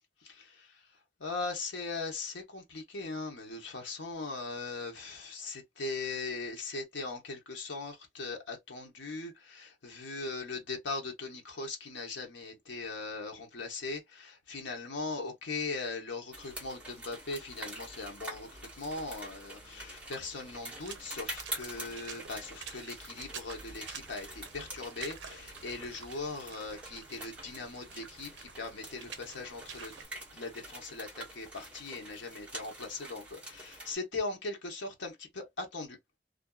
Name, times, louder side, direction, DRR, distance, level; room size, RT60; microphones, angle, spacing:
voice 1, 1.2-30.0 30.3-36.0, left 3 dB, 75° left, 0.9 m, -39 dB
sound 1, 16.3-33.9, right 1 dB, 5° right, 1.1 m, -46 dB
Water / Splash splatter, 20.7-30.1, right 6 dB, 70° right, 0.5 m, -49 dB
2.5 x 2.3 x 2.3 m
head